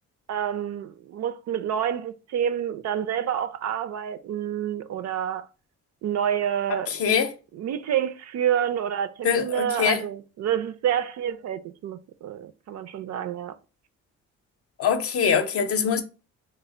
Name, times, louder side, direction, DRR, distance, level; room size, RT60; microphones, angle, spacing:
voice 1, 0.3-5.5 6.0-7.0 7.5-13.5, right 9 dB, 60° right, 0.5 m, -28 dB
voice 2, 6.9-7.3 9.2-10.0 14.8-16.0, left 7 dB, 50° left, 0.6 m, -23 dB
3.3 x 2.0 x 3.8 m
cardioid pair, 90°, 30 cm